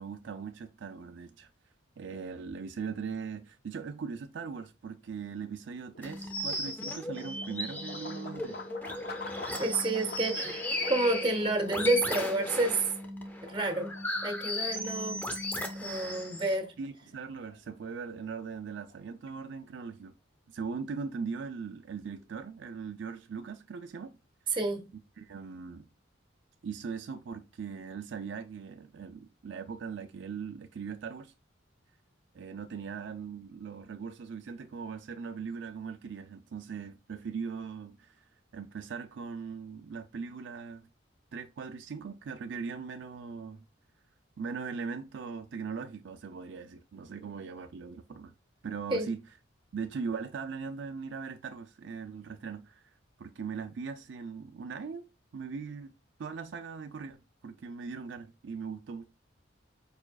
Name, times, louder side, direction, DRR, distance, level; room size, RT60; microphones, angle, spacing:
voice 1, 0.0-1.5 2.0-8.6 16.8-20.1 20.5-24.2 25.2-25.8 26.6-31.3 32.3-38.2 38.5-40.9 41.3-43.6 44.4-48.3 48.6-49.2 49.7-52.8 53.2-55.1 55.3-55.9 56.2-59.1, right 5 dB, 65° right, 0.4 m, -40 dB
sound 1, 5.5-19.6, left 3 dB, 50° left, 0.6 m, -48 dB
sound 2, 6.0-16.5, left 1 dB, 10° left, 0.7 m, -36 dB
voice 2, 9.6-12.9 13.4-13.9 14.2-15.2 15.8-16.7 24.5-24.9 48.9-49.1, right 2 dB, 25° right, 0.8 m, -30 dB
4.9 x 4.7 x 2.3 m
head